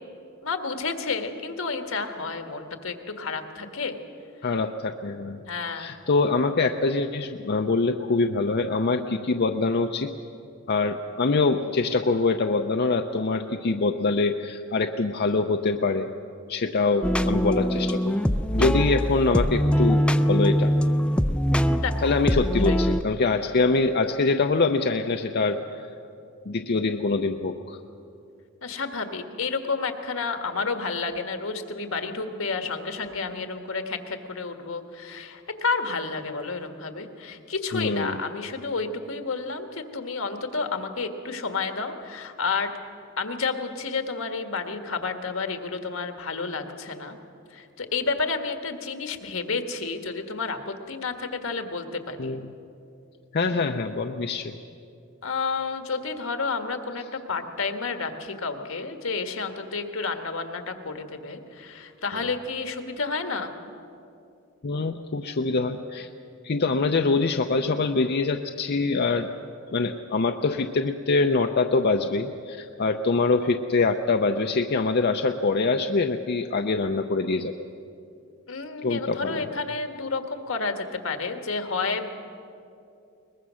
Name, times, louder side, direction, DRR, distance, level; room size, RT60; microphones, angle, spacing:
voice 1, 0.4-3.9 5.5-5.9 21.8-22.1 22.7-22.8 28.6-42.7 43.2-47.2 47.5-52.4 55.2-63.6 78.5-82.2, left 4 dB, 80° left, 7 dB, 1.6 m, -30 dB
voice 2, 4.4-5.4 5.7-10.1 10.7-16.1 16.5-18.1 18.5-20.0 20.3-20.7 22.0-25.8 26.5-27.8 37.7-38.2 52.2-52.5 53.3-54.5 64.6-66.1 66.4-69.3 69.7-77.5 78.8-79.5, left 3 dB, 50° left, 5 dB, 0.6 m, -24 dB
sound 1, 17.0-23.0, equal, 5° left, 0.5 m, -23 dB
21.5 x 20.5 x 6.3 m, 2.6 s
head